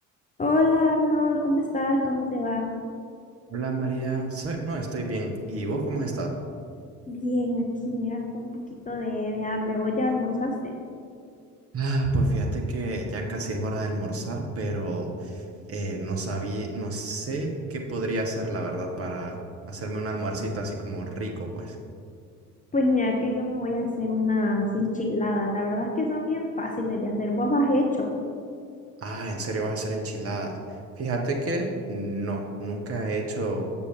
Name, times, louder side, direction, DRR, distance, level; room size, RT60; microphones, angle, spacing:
voice 1, 0.4-2.7 7.1-8.5 8.9-10.7 22.7-28.1, left 2 dB, 20° left, 1 dB, 0.6 m, -25 dB
voice 2, 3.5-6.3 11.7-15.3 15.7-19.4 19.7-21.7 29.0-30.6 31.0-33.7, right 2 dB, 30° right, 1 dB, 1.0 m, -29 dB
6.9 x 6.7 x 3.2 m, 2.3 s
figure-of-eight pair, 55°, 44 cm